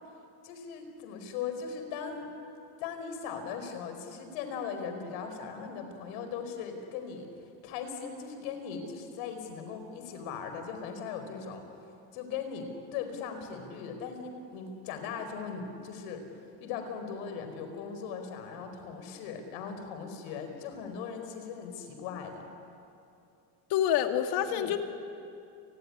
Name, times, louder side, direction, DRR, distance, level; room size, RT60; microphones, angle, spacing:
voice 1, 0.4-2.3 2.8-7.3 7.6-11.7 12.1-16.2 16.6-22.5 24.4-24.7, left 6 dB, 80° left, 7 dB, 4.9 m, -39 dB
voice 2, 23.7-24.8, left 10 dB, 65° left, 6 dB, 2.2 m, -27 dB
29.5 x 19.5 x 10.0 m, 2.6 s
cardioid pair, 155°, 40 cm